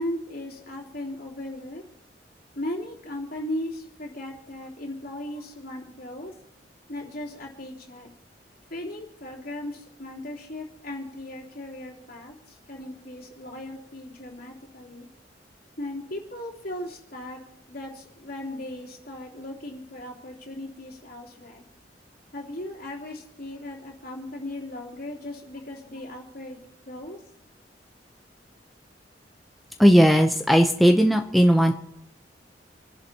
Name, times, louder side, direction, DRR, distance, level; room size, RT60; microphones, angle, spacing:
voice 1, 0.0-1.8 2.5-6.3 6.9-8.1 8.7-15.1 15.8-17.4 17.7-21.6 22.3-27.2, left 1 dB, 55° left, -3 dB, 3.3 m, -37 dB
voice 2, 29.8-31.7, equal, ahead, 3 dB, 0.6 m, -17 dB
28.5 x 11.0 x 2.9 m, 0.79 s
head